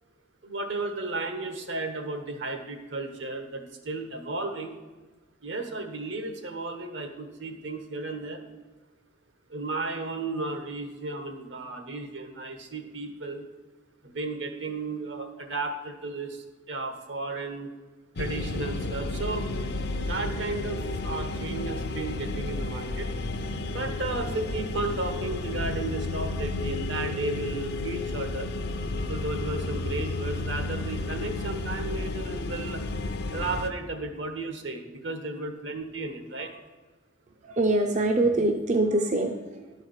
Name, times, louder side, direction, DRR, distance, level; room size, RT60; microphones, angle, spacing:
voice 1, 0.4-4.8 5.4-8.4 9.5-13.5 14.0-17.7 18.2-19.5 20.0-23.1 23.7-28.5 29.1-32.8 33.3-36.5, right 3 dB, 70° right, 6 dB, 1.2 m, -34 dB
sound 1, 18.2-33.7, left 2 dB, 55° left, 0.6 m, -32 dB
voice 2, 37.4-39.7, right 2 dB, 40° right, 3 dB, 0.5 m, -25 dB
11.5 x 4.7 x 6.4 m, 1.2 s
head